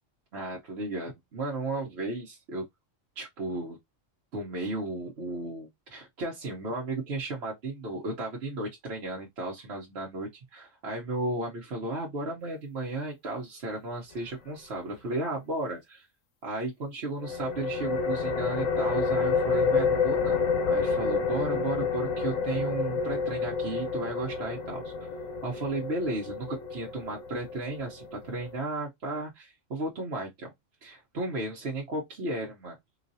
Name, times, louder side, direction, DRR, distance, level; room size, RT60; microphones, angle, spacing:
voice 1, 0.3-2.6 3.2-3.8 4.3-16.1 16.4-25.1 25.4-30.5 30.8-32.8, right 2 dB, 55° right, 1.1 m, -34 dB
sound 1, 17.2-28.6, left 5 dB, 85° left, 1.1 m, -29 dB
3.9 x 2.5 x 2.6 m
omnidirectional pair, 1.3 m